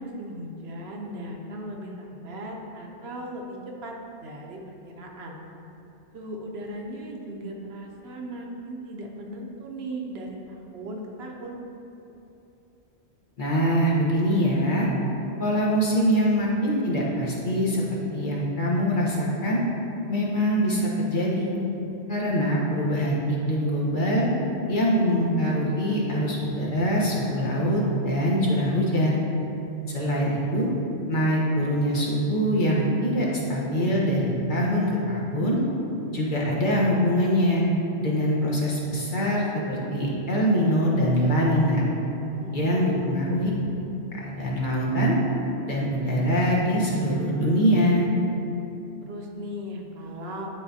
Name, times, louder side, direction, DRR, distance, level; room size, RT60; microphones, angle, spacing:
voice 1, 0.0-3.6 3.8-4.6 4.8-5.4 6.1-11.6 42.3-42.9 49.1-50.6, right 1 dB, 60° right, 0 dB, 1.0 m, -37 dB
voice 2, 13.4-14.9 15.4-17.8 18.1-19.6 20.1-21.6 22.1-23.2 23.5-24.3 24.7-29.2 29.9-30.7 31.1-35.6 36.1-37.7 38.0-41.9 42.5-43.5 44.1-45.2 45.6-48.1, equal, 45° left, -5 dB, 1.1 m, -23 dB
9.9 x 4.5 x 2.7 m, 2.9 s
omnidirectional pair, 1.2 m